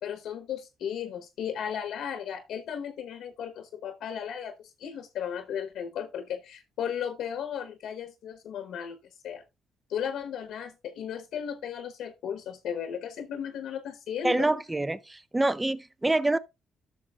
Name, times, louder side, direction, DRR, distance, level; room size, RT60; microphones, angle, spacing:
voice 1, 0.0-9.0 9.2-9.4 9.9-14.5, left 8 dB, 80° left, 1.1 m, -35 dB
voice 2, 14.2-16.4, right 2 dB, 15° right, 0.5 m, -26 dB
13.0 x 6.3 x 2.4 m
cardioid pair, 90°, 0 cm